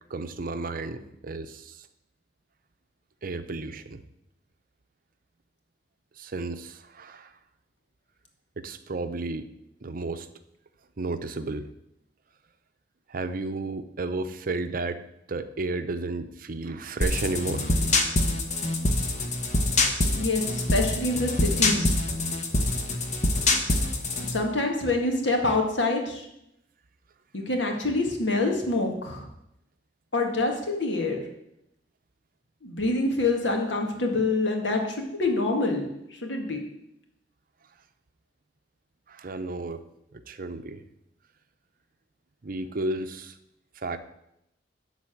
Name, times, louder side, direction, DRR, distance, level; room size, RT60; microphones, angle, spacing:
voice 1, 0.1-1.9 3.2-4.0 6.2-7.3 8.6-9.5 9.8-10.3 11.0-11.7 13.1-15.0 15.3-17.7 39.1-39.8 40.1-40.8 42.4-43.3 43.8-44.0, right 3 dB, 50° right, 10 dB, 0.7 m, -32 dB
sound 1, 17.0-24.4, left 2 dB, 40° left, 1.1 m, -25 dB
voice 2, 20.1-21.9 24.3-26.2 27.3-29.2 30.1-31.2 32.6-35.9 36.2-36.6, left 2 dB, 90° left, 2 dB, 1.9 m, -26 dB
12.0 x 4.0 x 7.6 m, 0.82 s
head